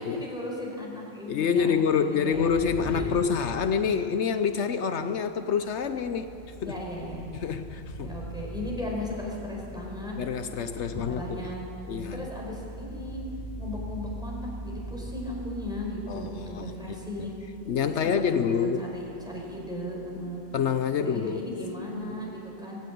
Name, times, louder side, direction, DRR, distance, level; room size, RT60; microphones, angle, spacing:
voice 1, 0.0-2.6 2.8-3.0 6.6-7.2 8.0-10.2 11.1-11.7 12.1-13.2 13.6-17.3 17.8-20.4 21.0-22.8, left 1 dB, 5° right, -3 dB, 5.0 m, -36 dB
voice 2, 1.3-6.3 6.6-6.8 7.4-8.1 10.2-11.5 11.9-12.3 16.1-16.7 17.7-18.9 20.5-21.4, left 6 dB, 75° left, 9 dB, 1.0 m, -27 dB
sound 1, 2.3-4.0 5.1-22.0, right 1 dB, 60° left, 2.3 m, -42 dB
18.0 x 17.0 x 8.5 m, 2.7 s
omnidirectional pair, 1.2 m